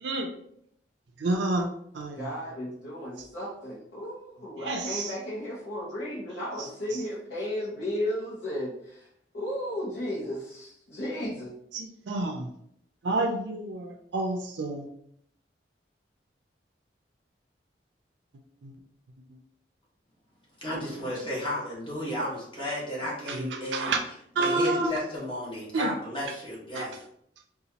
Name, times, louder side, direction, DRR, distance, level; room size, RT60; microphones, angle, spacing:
voice 1, 1.2-1.7 1.9-2.3 3.2-3.3 4.6-5.1 6.6-7.0 11.7-12.5 13.0-14.9 18.6-18.7 23.3-24.0 24.4-24.9 25.7-25.9 26.7-26.9, right 2 dB, 80° right, 3 dB, 0.4 m, -29 dB
voice 2, 2.2-9.1 9.3-11.5, left 1 dB, 65° left, -9 dB, 1.0 m, -34 dB
voice 3, 20.6-23.9 24.4-27.0, equal, 30° left, -5 dB, 1.1 m, -33 dB
3.8 x 2.4 x 2.8 m, 0.70 s
head